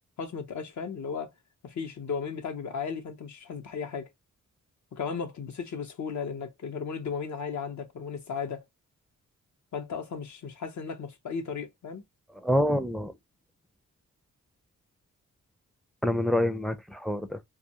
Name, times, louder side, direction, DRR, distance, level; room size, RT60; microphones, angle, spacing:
voice 1, 0.2-1.3 1.6-4.1 4.9-8.6 9.7-12.0, left 6 dB, 65° left, 0.8 m, -35 dB
voice 2, 12.4-13.1 16.0-17.4, equal, ahead, 0.4 m, -26 dB
2.3 x 2.3 x 2.8 m
cardioid pair, 60°, 32 cm